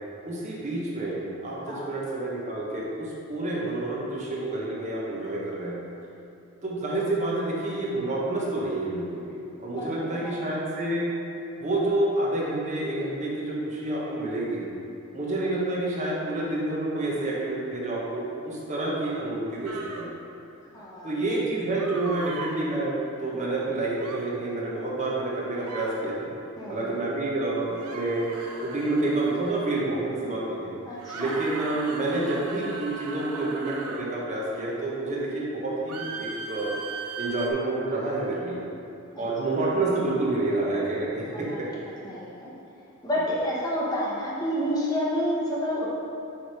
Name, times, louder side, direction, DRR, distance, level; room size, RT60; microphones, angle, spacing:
voice 1, 0.2-5.8 6.6-9.2 9.6-11.1 11.6-14.7 15.1-20.1 21.0-26.3 26.7-28.3 28.6-30.7 31.1-36.7 37.2-38.6 39.2-41.7, right 2 dB, 30° right, -5 dB, 1.1 m, -28 dB
voice 2, 9.8-10.6 20.7-21.4 26.6-26.9 30.9-31.3 41.3-41.6 42.0-42.5 43.0-45.9, equal, 15° left, -6 dB, 1.0 m, -29 dB
sound 1, 19.7-20.1 21.8-22.6 24.0-24.3 25.6-26.0 27.8-29.6 31.0-34.1 35.9-37.5, right 3 dB, 90° right, 0.7 m, -38 dB
7.1 x 3.5 x 4.8 m, 2.8 s
head